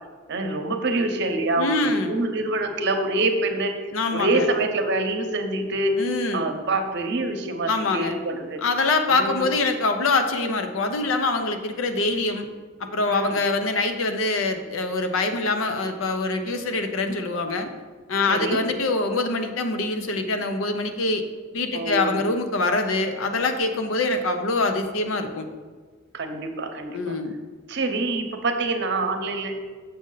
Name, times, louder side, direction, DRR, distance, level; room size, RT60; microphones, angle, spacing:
voice 1, 0.3-3.7 4.1-5.9 6.3-8.6 9.1-9.5 13.1-13.4 18.2-18.6 21.7-22.2 26.1-27.1 27.7-29.7, right 2 dB, 60° right, 5 dB, 0.8 m, -26 dB
voice 2, 1.6-2.2 3.9-4.5 6.0-6.5 7.7-8.1 8.6-12.5 12.8-17.7 18.1-21.2 21.5-25.5 26.9-27.4, left 3 dB, 80° left, 7 dB, 0.7 m, -24 dB
6.8 x 6.4 x 3.9 m, 1.5 s
head